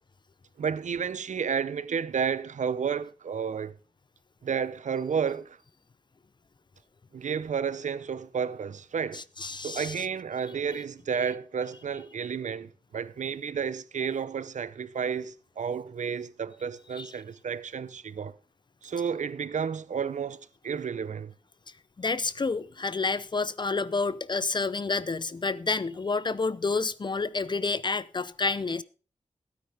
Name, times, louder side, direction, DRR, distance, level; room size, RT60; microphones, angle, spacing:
voice 1, 0.6-3.8 4.4-5.6 7.1-9.2 9.6-18.4 18.8-21.3, right 7 dB, 90° right, 0.7 m, -31 dB
voice 2, 9.1-9.9 17.0-17.1 22.0-28.8, left 4 dB, 40° left, 0.5 m, -29 dB
16.0 x 9.5 x 3.4 m
wide cardioid pair, 115°, 12 cm